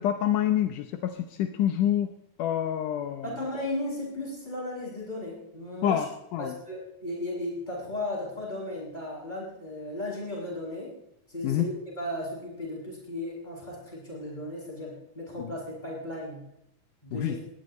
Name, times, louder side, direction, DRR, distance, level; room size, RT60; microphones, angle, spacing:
voice 1, 0.0-2.1 2.4-3.3 5.8-6.5 11.4-11.7 15.4-15.5 17.1-17.4, left 11 dB, 80° left, 7 dB, 2.4 m, -27 dB
voice 2, 3.2-6.1 6.4-10.9 11.3-16.5 17.0-17.3, left 1 dB, 10° left, -5 dB, 8.0 m, -35 dB
20.0 x 18.0 x 3.1 m, 0.81 s
omnidirectional pair, 3.7 m